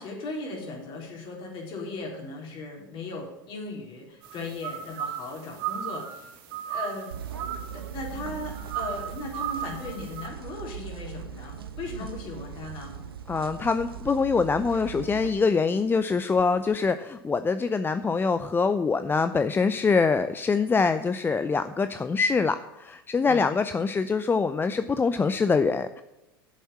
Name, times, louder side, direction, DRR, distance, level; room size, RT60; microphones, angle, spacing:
voice 1, 0.0-7.2 7.7-12.9 23.2-23.5, left 3 dB, 45° left, 0 dB, 4.2 m, -37 dB
sound 1, 4.2-10.3, right 10 dB, 60° right, 1.8 m, -36 dB
sound 2, 7.1-15.3, right 8 dB, 85° right, 1.0 m, -39 dB
voice 2, 13.3-26.0, left 4 dB, 15° left, 11 dB, 0.6 m, -24 dB
7.9 x 7.5 x 8.5 m, 0.98 s
hypercardioid pair, 85°, 12 cm